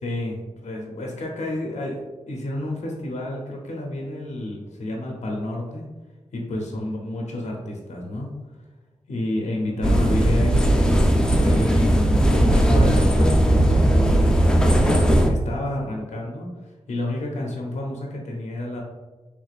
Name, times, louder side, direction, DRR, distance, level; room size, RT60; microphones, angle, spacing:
voice 1, 0.0-5.9 6.3-8.3 9.1-12.0 12.3-18.8, left 1 dB, 75° left, -1 dB, 0.7 m, -30 dB
sound 1, 9.8-15.3, right 1 dB, 5° left, 0.4 m, -18 dB
3.3 x 3.3 x 2.4 m, 1.2 s
cardioid pair, 60°, 12 cm